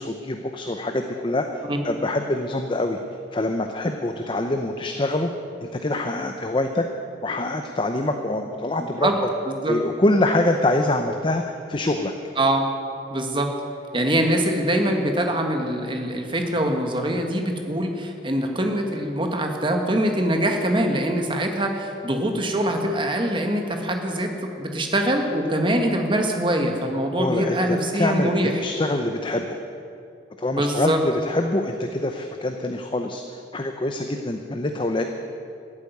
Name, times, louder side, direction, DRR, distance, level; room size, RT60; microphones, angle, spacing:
voice 1, 0.0-3.0 3.3-5.3 5.6-6.9 7.2-9.3 9.7-12.1 27.1-28.3 28.6-29.6 30.4-35.0, left 1 dB, 25° left, 5 dB, 0.7 m, -25 dB
voice 2, 9.5-9.8 12.4-12.7 13.1-13.5 13.9-28.6 30.5-31.0, right 1 dB, 30° right, 4 dB, 1.6 m, -23 dB
14.0 x 8.5 x 9.4 m, 2.5 s
head